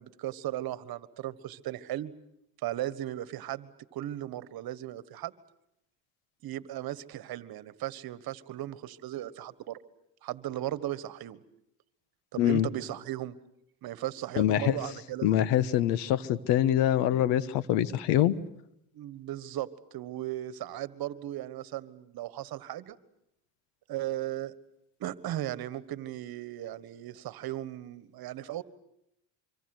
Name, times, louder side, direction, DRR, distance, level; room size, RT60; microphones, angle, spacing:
voice 1, 0.0-2.1 2.6-5.3 6.4-9.8 10.2-11.4 12.3-13.4 13.8-15.3 18.9-23.0 23.9-24.5 25.0-28.6, right 13 dB, 60° right, 16 dB, 1.6 m, -36 dB
voice 2, 12.4-12.7 14.4-14.8 15.2-18.3, left 12 dB, 80° left, 17 dB, 1.4 m, -25 dB
26.0 x 25.0 x 7.9 m, 0.77 s
supercardioid pair, 95°, 41 cm